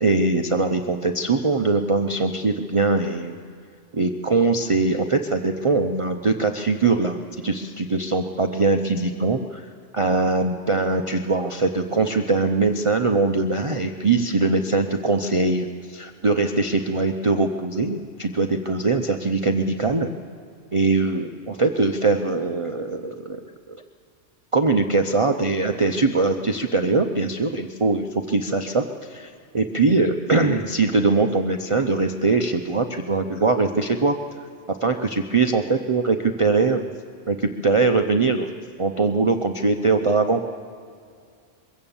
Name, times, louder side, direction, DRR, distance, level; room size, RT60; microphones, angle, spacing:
voice 1, 0.0-3.4 3.9-20.1 20.7-23.8 24.5-34.2 34.7-36.9 37.3-38.5 38.8-40.5, right 3 dB, 30° right, 5 dB, 0.7 m, -22 dB
22.5 x 16.0 x 7.2 m, 2.2 s
omnidirectional pair, 1.3 m